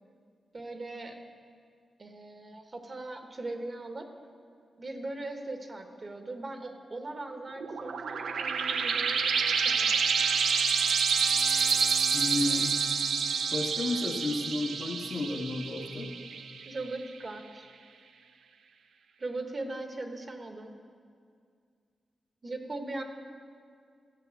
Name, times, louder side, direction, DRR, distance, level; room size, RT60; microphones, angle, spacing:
voice 1, 0.5-1.2 2.0-4.1 4.8-9.9 16.6-17.7 19.2-20.7 22.4-23.0, right 2 dB, 40° right, 5 dB, 1.1 m, -39 dB
sound 1, 7.6-16.8, right 6 dB, 85° right, 0.6 m, -28 dB
voice 2, 12.1-12.8 13.5-16.1, left 2 dB, 60° left, 1 dB, 1.4 m, -32 dB
12.0 x 7.1 x 8.1 m, 2.2 s
cardioid pair, 85°, 0 cm